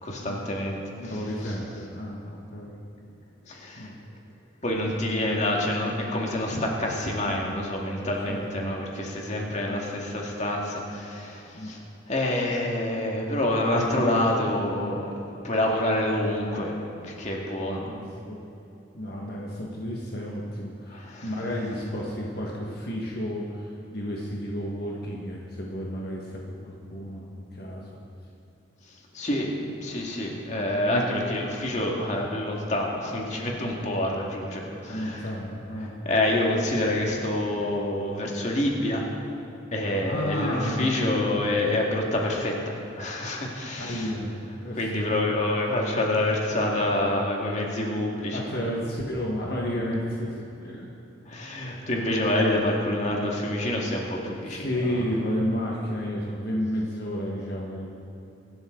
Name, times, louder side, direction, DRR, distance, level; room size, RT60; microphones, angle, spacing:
voice 1, 0.0-0.9 1.4-1.5 3.5-3.9 4.6-11.8 12.1-15.1 15.4-16.7 17.0-17.8 20.9-21.3 29.1-35.3 35.8-39.1 39.7-44.1 44.8-48.4 51.3-55.0, left 1 dB, 35° left, -1 dB, 2.2 m, -27 dB
voice 2, 1.0-2.8 3.8-4.0 8.3-8.4 9.7-9.8 11.5-11.7 13.7-14.6 17.8-18.0 18.3-18.4 18.9-28.0 34.8-35.9 40.0-41.5 43.7-45.1 48.3-50.3 50.6-50.9 54.5-57.9, equal, 50° left, -3 dB, 1.7 m, -32 dB
25.0 x 12.5 x 4.0 m, 2.9 s
head